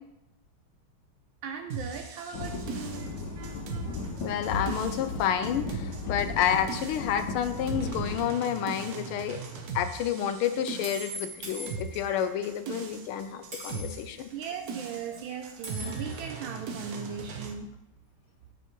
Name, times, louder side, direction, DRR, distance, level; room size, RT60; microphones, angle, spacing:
voice 1, 1.4-4.0 14.0-17.7, right 7 dB, 75° right, 4 dB, 1.3 m, -39 dB
sound 1, 1.7-17.5, right 4 dB, 60° right, 1.1 m, -39 dB
sound 2, 2.3-8.2, left 3 dB, 60° left, 1.2 m, -36 dB
voice 2, 4.2-9.4 9.7-14.2, left 9 dB, 90° left, 9 dB, 1.6 m, -29 dB
sound 3, 9.3-9.5 10.8-12.3 13.5-14.1 15.6-16.3, right 1 dB, 35° right, 2.2 m, -41 dB
10.0 x 5.7 x 3.1 m, 0.90 s
omnidirectional pair, 2.3 m